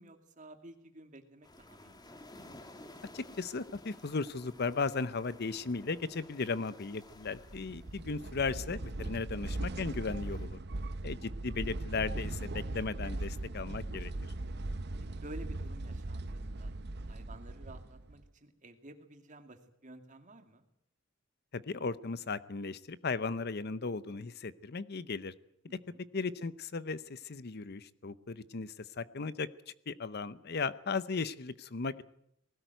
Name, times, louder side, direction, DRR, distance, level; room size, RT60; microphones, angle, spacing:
voice 1, 0.0-2.1 11.1-11.2 15.1-16.7 17.1-20.7 25.7-26.1, right 1 dB, 40° right, 6 dB, 2.5 m, -52 dB
sound 1, 1.4-10.5, left 1 dB, 20° left, 1.7 m, -55 dB
voice 2, 3.1-10.6 11.0-14.1 21.5-25.3 26.1-29.5 29.9-32.0, left 4 dB, 55° left, 16 dB, 0.7 m, -36 dB
sound 2, 7.2-18.3, right 2 dB, 55° right, 0.8 m, -39 dB
20.0 x 17.5 x 9.2 m, 0.75 s
head